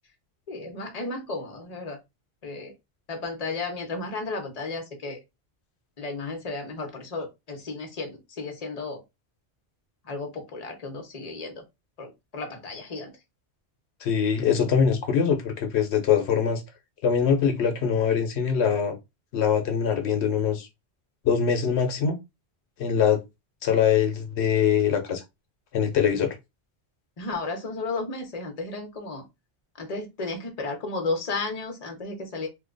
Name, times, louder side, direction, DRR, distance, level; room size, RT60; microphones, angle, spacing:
voice 1, 0.5-2.0 2.4-2.7 3.1-5.2 6.0-9.0 10.1-11.6 12.0-13.1 27.2-29.2 29.8-32.5, left 3 dB, 40° left, 0.9 m, -33 dB
voice 2, 14.0-16.6 17.0-19.0 19.3-20.7 21.2-22.2 22.8-23.2 23.6-25.2 25.7-26.3, left 7 dB, 85° left, 1.0 m, -23 dB
2.8 x 2.2 x 3.8 m
omnidirectional pair, 1.1 m